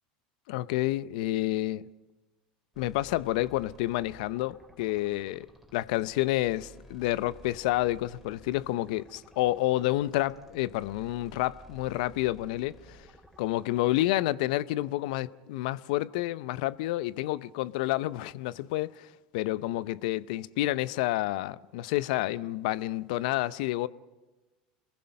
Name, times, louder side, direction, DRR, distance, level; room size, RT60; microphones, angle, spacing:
voice 1, 0.5-1.9 2.8-5.5 5.7-13.1 13.4-19.1 19.3-23.9, left 16 dB, 75° left, 0.6 m, -29 dB
sound 1, 2.7-14.1, right 1 dB, ahead, 4.0 m, -54 dB
27.0 x 21.5 x 5.4 m
hypercardioid pair, 95°, 4 cm